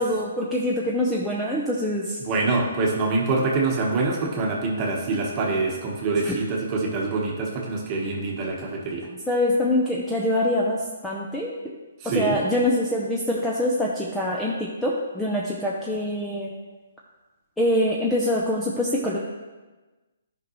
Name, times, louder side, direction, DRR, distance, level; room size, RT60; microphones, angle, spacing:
voice 1, 0.0-2.2 6.2-6.3 9.3-11.5 12.0-16.5 17.6-19.2, left 1 dB, 5° left, -4 dB, 0.7 m, -24 dB
voice 2, 2.2-9.1 12.0-12.4, right 3 dB, 30° right, -2 dB, 1.4 m, -25 dB
10.5 x 5.3 x 3.2 m, 1.2 s
hypercardioid pair, 145°, 0 cm